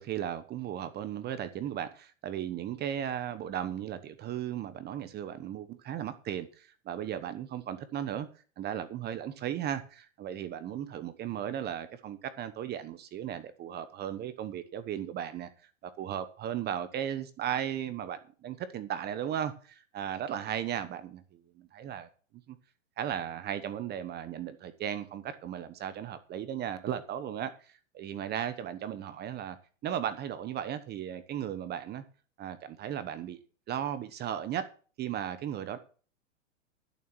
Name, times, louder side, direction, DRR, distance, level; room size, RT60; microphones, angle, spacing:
voice 1, 0.0-8.3 8.6-22.1 22.5-22.6 23.0-29.6 29.8-32.0 32.4-33.4 33.7-34.7 35.0-35.8, right 10 dB, 25° right, 1.1 m, -36 dB
12.0 x 7.3 x 6.2 m
hypercardioid pair, 125°, 38 cm